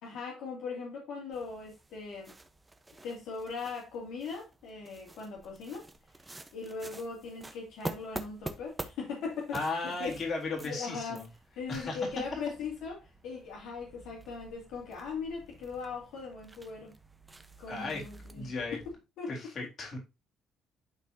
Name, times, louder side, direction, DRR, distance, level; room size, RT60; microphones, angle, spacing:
voice 1, 0.0-2.3 3.0-5.9 6.5-10.2 10.6-11.2 11.5-16.9 17.6-19.3, left 5 dB, 80° left, 2.6 m, -39 dB
sound 1, 1.3-18.9, right 2 dB, 15° right, 1.1 m, -48 dB
voice 2, 9.5-11.2 11.7-12.0 17.7-18.1 18.3-18.8 19.3-20.0, left 3 dB, 50° left, 3.7 m, -35 dB
11.5 x 4.3 x 2.8 m
supercardioid pair, 80°, 0 cm